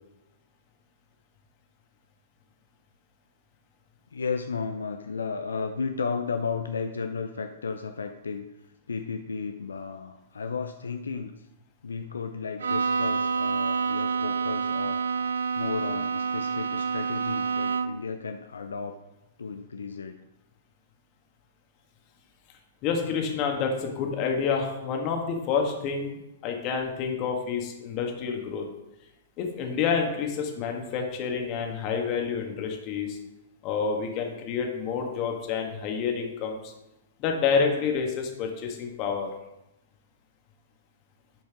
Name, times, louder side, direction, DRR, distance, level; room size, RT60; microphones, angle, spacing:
voice 1, 4.1-8.5 8.9-11.5 11.8-15.2 15.6-19.0 19.4-20.2, left 5 dB, 75° left, 6 dB, 0.5 m, -33 dB
Bowed string instrument, 12.6-18.1, right 5 dB, 70° right, 0.5 m, -28 dB
voice 2, 22.8-28.6 29.4-33.2 33.6-36.7 37.2-39.3, left 6 dB, 35° left, 2 dB, 1.6 m, -28 dB
10.5 x 5.1 x 3.7 m, 0.93 s
figure-of-eight pair, 110°, 0 cm